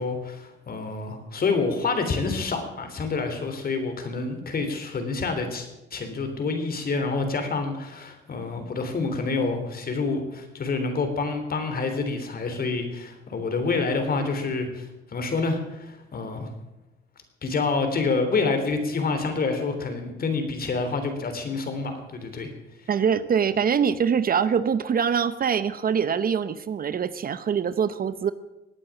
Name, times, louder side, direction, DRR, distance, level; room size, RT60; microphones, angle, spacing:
voice 1, 0.0-16.5 17.4-22.5, left 4 dB, 50° left, 7 dB, 3.5 m, -27 dB
voice 2, 22.9-28.3, right 7 dB, 45° right, 14 dB, 0.8 m, -24 dB
18.0 x 8.9 x 7.3 m, 0.99 s
cardioid pair, 90°, 20 cm